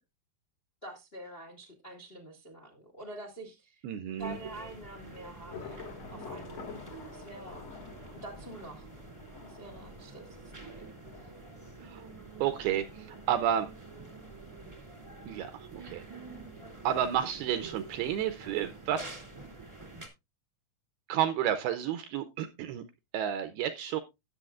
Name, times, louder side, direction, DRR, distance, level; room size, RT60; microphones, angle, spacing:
voice 1, 0.8-3.8 4.2-5.8 6.1-6.8 7.1-7.6 8.1-8.9 9.4-10.9 11.2-11.3, right 1 dB, 80° left, 4 dB, 0.5 m, -46 dB
voice 2, 3.8-4.4 11.8-12.1 12.4-13.7 15.3-16.0 16.8-19.2 21.1-22.8 23.1-24.0, right 10 dB, 80° right, 10 dB, 2.3 m, -31 dB
sound 1, 4.2-20.1, right 3 dB, 15° right, 1.0 m, -48 dB
Thunder / Rain, 4.3-17.8, left 5 dB, 55° left, 1.8 m, -51 dB
18.0 x 7.0 x 2.4 m, 0.23 s
omnidirectional pair, 5.1 m